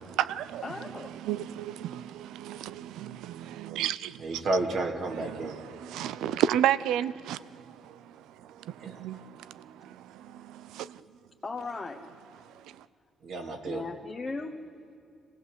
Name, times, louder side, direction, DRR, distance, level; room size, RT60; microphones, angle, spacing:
voice 1, 0.0-0.6 1.1-4.4 5.1-11.0 12.4-12.8, right 11 dB, 90° right, 0.5 m, -33 dB
voice 2, 0.6-1.2 11.4-12.0 13.7-14.6, left 3 dB, 25° left, 1.2 m, -37 dB
voice 3, 4.2-5.6 8.8-9.0 13.2-13.9, right 2 dB, 65° right, 2.4 m, -31 dB
24.0 x 17.0 x 8.1 m
cardioid pair, 90°, 0 cm